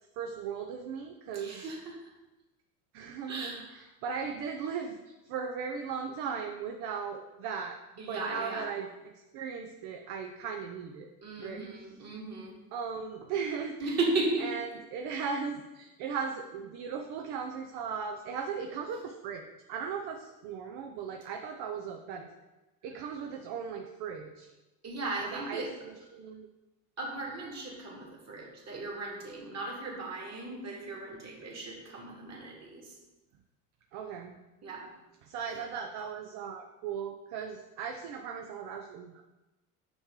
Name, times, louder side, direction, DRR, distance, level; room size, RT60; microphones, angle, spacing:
voice 1, 0.2-1.8 2.9-7.8 8.1-11.1 11.4-11.6 12.7-14.0 14.4-22.3 22.8-24.5 25.3-26.5 33.9-34.4 35.2-39.2, right 6 dB, 60° right, 4 dB, 0.7 m, -37 dB
voice 2, 1.3-2.1 3.3-3.8 8.0-8.7 11.2-12.5 13.8-14.5 24.8-25.7 27.0-33.0 34.6-34.9, right 2 dB, 35° right, -2 dB, 2.2 m, -36 dB
6.0 x 5.0 x 3.7 m, 1.1 s
hypercardioid pair, 75°, 44 cm